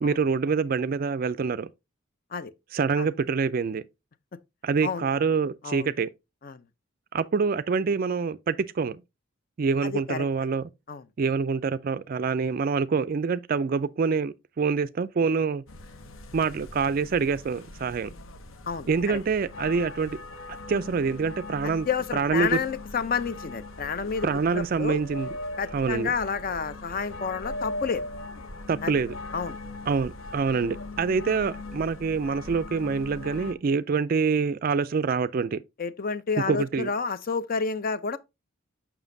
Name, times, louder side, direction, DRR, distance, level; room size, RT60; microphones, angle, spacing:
voice 1, 0.0-1.7 2.7-3.8 4.6-6.1 7.1-9.0 9.6-10.7 11.2-15.6 16.3-18.1 18.9-20.2 20.7-21.9 22.1-22.6 24.2-25.4 25.7-26.1 28.7-29.1 29.9-35.6 36.5-36.9, right 5 dB, 45° right, 0.3 m, -26 dB
voice 2, 9.8-10.3 10.9-11.0 18.7-19.2 21.9-24.3 24.5-25.0 25.6-28.0 28.8-29.0 29.3-29.6 35.8-38.2, left 5 dB, 40° left, 0.5 m, -30 dB
sound 1, 15.7-33.5, left 2 dB, 70° left, 0.8 m, -40 dB
7.1 x 5.8 x 2.6 m
head